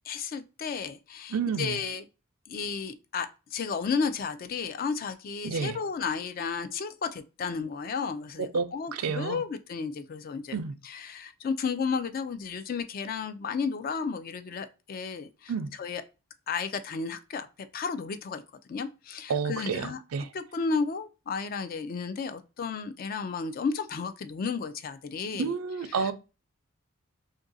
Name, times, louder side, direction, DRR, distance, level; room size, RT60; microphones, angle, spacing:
voice 1, 0.0-2.1 2.5-10.6 10.8-15.5 15.8-16.0 16.5-18.4 18.7-20.0 20.3-25.5 25.9-26.1, left 5 dB, 40° left, 0.3 m, -33 dB
voice 2, 1.3-1.8 5.4-5.8 8.5-9.4 10.5-10.7 15.5-15.7 19.3-20.3 25.4-26.1, right 5 dB, 80° right, 0.4 m, -30 dB
2.7 x 2.5 x 3.8 m
head